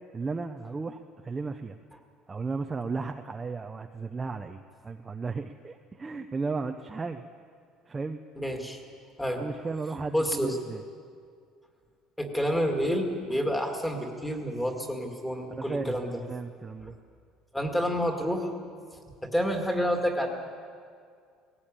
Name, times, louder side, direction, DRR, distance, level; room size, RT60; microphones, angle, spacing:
voice 1, 0.1-1.8 2.3-7.2 7.9-8.2 9.4-10.8 15.6-16.0 16.3-17.0, right 4 dB, 15° right, 6 dB, 0.5 m, -34 dB
voice 2, 8.4-8.8 9.2-9.5 10.1-10.6 12.2-16.2 16.8-16.9 17.5-18.5 19.2-20.3, equal, 5° left, 3 dB, 2.0 m, -29 dB
19.0 x 17.0 x 8.9 m, 2.2 s
cardioid pair, 165°, 0 cm